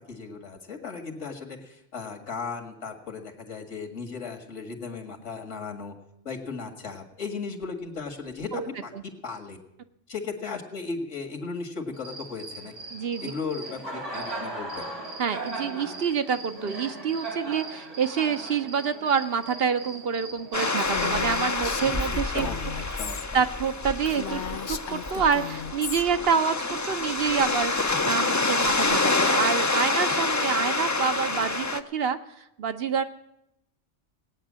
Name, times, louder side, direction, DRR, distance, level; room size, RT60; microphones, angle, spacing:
voice 1, 0.0-5.9 6.2-8.9 9.2-9.6 10.1-12.7 13.2-14.9 21.8-21.9 22.3-23.2, left 4 dB, 75° left, 3 dB, 2.2 m, -36 dB
Cricket, 11.9-22.0, right 2 dB, 80° right, 3.8 m, -38 dB
voice 2, 12.9-13.3 15.2-22.5 23.3-33.0, right 6 dB, 60° right, 9 dB, 0.9 m, -27 dB
sound 1, 20.5-31.8, left 3 dB, 25° left, 0.4 m, -27 dB
Female speech woman speaking, 20.8-23.3 23.6-23.7 24.0-26.0, left 8 dB, 50° left, 0.8 m, -36 dB
18.0 x 9.2 x 7.4 m, 0.85 s
omnidirectional pair, 1.2 m